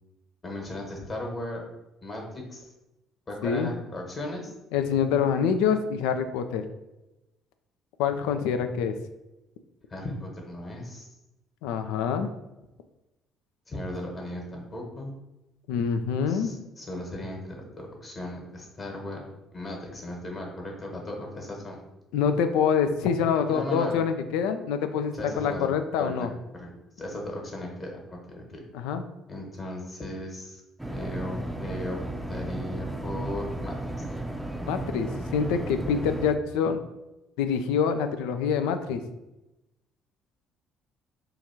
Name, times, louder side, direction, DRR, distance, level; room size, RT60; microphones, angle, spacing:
voice 1, 0.4-1.6 2.0-2.7 3.3-4.5 9.9-11.1 13.7-15.1 16.3-19.2 19.5-21.8 23.5-24.0 25.1-25.7 26.0-26.3 26.5-26.7 27.0-28.6 29.3-30.6 30.9-32.0 32.3-34.0, left 1 dB, 35° left, 0 dB, 1.3 m, -36 dB
voice 2, 4.7-6.6 8.0-8.9 11.6-12.3 15.7-16.5 22.1-26.3 28.7-29.0 34.7-36.8 37.4-39.0, left 7 dB, 75° left, 8 dB, 0.3 m, -26 dB
sound 1, 30.8-36.3, right 1 dB, 10° right, 0.5 m, -34 dB
2.9 x 2.5 x 4.3 m, 0.97 s
hypercardioid pair, 55°, 0 cm